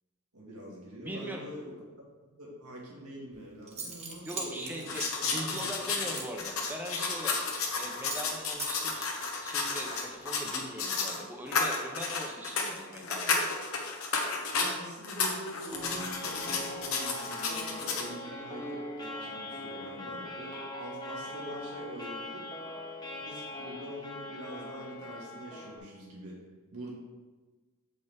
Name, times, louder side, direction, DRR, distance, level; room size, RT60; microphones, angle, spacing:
voice 1, 0.3-1.7 2.2-4.9 5.2-5.7 14.5-22.5 23.2-26.4 26.7-26.9, equal, 85° right, -4 dB, 2.1 m, -44 dB
voice 2, 1.0-1.4 4.3-7.4 7.8-9.1 9.3-13.5, right 1 dB, 10° right, 1 dB, 0.7 m, -41 dB
Zipper (clothing) / Coin (dropping), 3.3-3.4 3.7-7.8 8.1-8.3 8.6-10.4, right 4 dB, 30° right, 1.0 m, -42 dB
sound 1, 4.8-11.2 11.5-14.7 15.0-18.1, left 4 dB, 70° left, 1.1 m, -32 dB
sound 2, 15.7-25.8, left 1 dB, 20° left, 0.9 m, -41 dB
7.9 x 5.4 x 3.5 m, 1.3 s
head